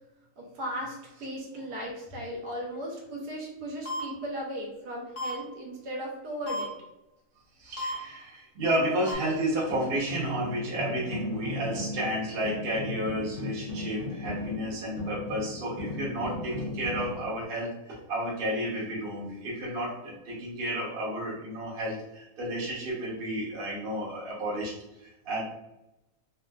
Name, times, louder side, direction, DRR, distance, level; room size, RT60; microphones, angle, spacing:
voice 1, 0.4-6.7, equal, 80° right, -2 dB, 1.4 m, -37 dB
sound 1, 3.9-4.0 5.2-5.3 6.5-6.6 7.8-7.9 9.1-9.2, left 2 dB, 50° left, 1.3 m, -32 dB
voice 2, 7.6-25.4, right 1 dB, 45° right, -5 dB, 0.9 m, -32 dB
sound 2, 9.2-17.4, left 2 dB, 70° left, 1.3 m, -37 dB
3.5 x 2.4 x 2.2 m, 0.94 s
omnidirectional pair, 1.7 m